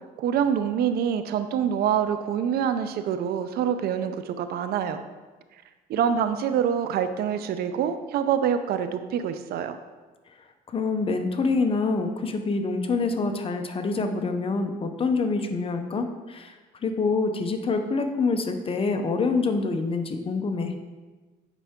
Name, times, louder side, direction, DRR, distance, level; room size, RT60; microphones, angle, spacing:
voice 1, 0.2-5.0 5.9-9.8, right 8 dB, 65° right, 10 dB, 0.6 m, -26 dB
voice 2, 10.7-16.5 16.8-20.7, left 3 dB, 35° left, 6 dB, 0.8 m, -26 dB
8.2 x 5.5 x 3.7 m, 1.3 s
cardioid pair, 110°, 17 cm